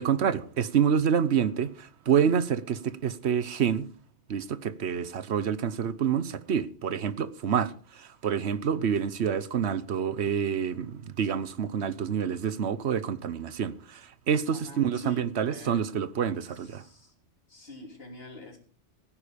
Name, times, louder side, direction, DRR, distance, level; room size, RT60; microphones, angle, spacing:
voice 1, 0.0-3.9 4.3-16.8, right 7 dB, 65° right, 1.1 m, -27 dB
voice 2, 14.5-15.9 16.5-17.1 17.5-18.6, left 1 dB, 50° left, 3.6 m, -45 dB
17.0 x 10.0 x 5.1 m
omnidirectional pair, 1.2 m